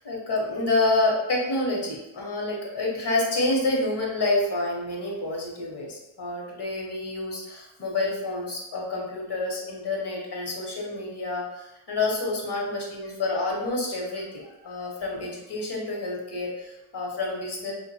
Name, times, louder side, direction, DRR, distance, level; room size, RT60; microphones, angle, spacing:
voice 1, 0.0-17.7, left 2 dB, 55° left, -2 dB, 0.9 m, -28 dB
2.4 x 2.2 x 2.6 m, 0.92 s
cardioid pair, 70°, 47 cm